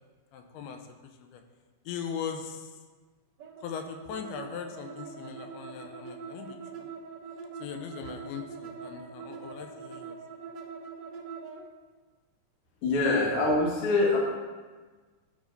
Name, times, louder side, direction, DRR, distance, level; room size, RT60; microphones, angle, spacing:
voice 1, 0.3-0.9 1.2-1.4 1.9-2.8 3.6-6.9 7.6-10.2, left 7 dB, 90° left, 5 dB, 2.6 m, -39 dB
sound 1, 3.4-11.6, right 5 dB, 70° right, 1.6 m, -43 dB
voice 2, 12.8-14.2, left 2 dB, 70° left, -3 dB, 1.3 m, -24 dB
12.0 x 5.0 x 2.6 m, 1.4 s
omnidirectional pair, 4.5 m